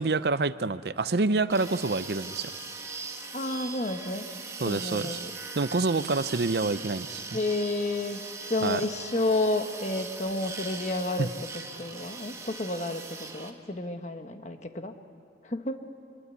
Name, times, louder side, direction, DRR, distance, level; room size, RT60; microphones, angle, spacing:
voice 1, 0.0-2.5 4.6-5.2 5.6-7.2 8.6-8.8 11.2-11.3, right 3 dB, 60° right, 14 dB, 0.6 m, -27 dB
sound 1, 1.5-13.5, right 4 dB, 15° right, 1.5 m, -40 dB
voice 2, 3.3-4.3 4.6-5.3 7.3-8.2 8.5-14.9 15.4-15.9, left 2 dB, 40° left, 7 dB, 1.3 m, -31 dB
25.5 x 22.5 x 8.4 m, 2.2 s
head